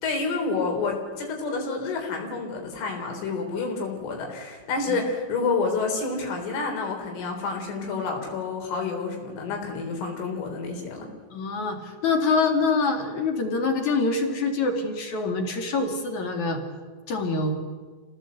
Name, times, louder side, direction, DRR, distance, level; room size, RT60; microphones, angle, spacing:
voice 1, 0.0-11.1, left 4 dB, 75° left, 2 dB, 6.4 m, -29 dB
voice 2, 11.3-16.6 17.1-17.6, left 3 dB, 45° left, 4 dB, 2.8 m, -25 dB
28.0 x 18.0 x 8.1 m, 1.5 s
omnidirectional pair, 5.7 m